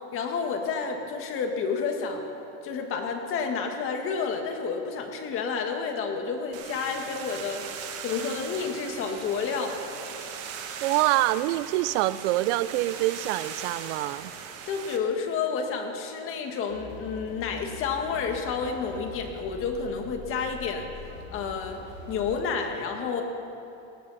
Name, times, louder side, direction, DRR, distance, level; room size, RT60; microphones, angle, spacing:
voice 1, 0.1-2.2 2.6-9.8 14.6-20.9 21.3-21.8 22.1-23.2, left 5 dB, 35° left, 4 dB, 1.7 m, -30 dB
sound 1, 6.5-15.0, right 7 dB, 35° right, 1.5 m, -39 dB
voice 2, 10.8-14.3, right 16 dB, 60° right, 17 dB, 0.6 m, -25 dB
sound 2, 16.7-22.4, left 3 dB, 70° left, 5.0 m, -44 dB
18.5 x 18.0 x 4.1 m, 2.8 s
supercardioid pair, 165°, 40 cm